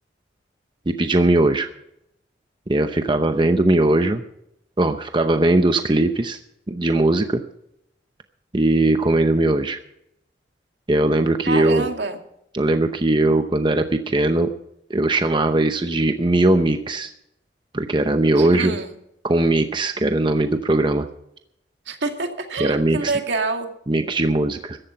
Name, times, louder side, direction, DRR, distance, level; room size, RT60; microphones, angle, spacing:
voice 1, 0.9-1.7 2.7-4.2 4.8-6.4 6.7-7.4 8.5-9.8 10.9-11.9 12.5-14.5 14.9-17.1 17.7-18.8 19.2-21.1 22.6-23.1 23.9-24.8, right 2 dB, 25° right, 7 dB, 0.8 m, -19 dB
voice 2, 11.4-12.2 18.4-18.9 21.9-23.7, right 3 dB, 75° right, 4 dB, 2.2 m, -26 dB
14.5 x 12.0 x 5.8 m, 0.78 s
head